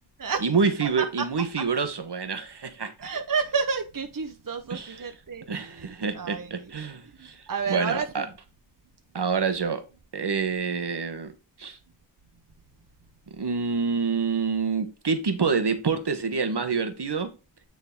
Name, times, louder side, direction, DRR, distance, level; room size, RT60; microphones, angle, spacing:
voice 1, 0.4-3.1 4.7-5.1 5.5-7.4 7.7-8.3 9.1-9.8 10.1-11.3 11.6-11.8 13.4-17.3, right 5 dB, 70° right, 1.2 m, -27 dB
voice 2, 3.0-5.8 6.1-6.7 7.2-8.3, right 5 dB, 50° right, 1.0 m, -30 dB
9.4 x 3.9 x 3.6 m
wide cardioid pair, 50°, 43 cm